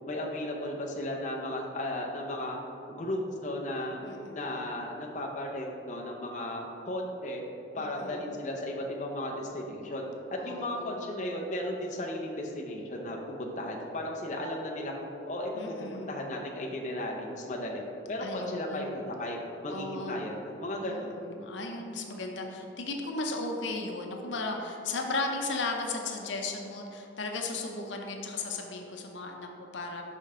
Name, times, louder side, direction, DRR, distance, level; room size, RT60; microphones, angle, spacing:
voice 1, 0.1-2.6 2.9-4.0 4.3-7.4 7.7-10.0 10.4-14.9 15.3-17.8 18.1-21.1, left 1 dB, 40° left, -1 dB, 0.6 m, -35 dB
voice 2, 4.0-4.4 7.7-8.2 10.4-11.0 15.5-16.1 18.2-18.9 19.7-20.2 20.8-30.0, left 3 dB, 80° left, 2 dB, 0.7 m, -36 dB
5.5 x 5.1 x 3.7 m, 3.0 s
head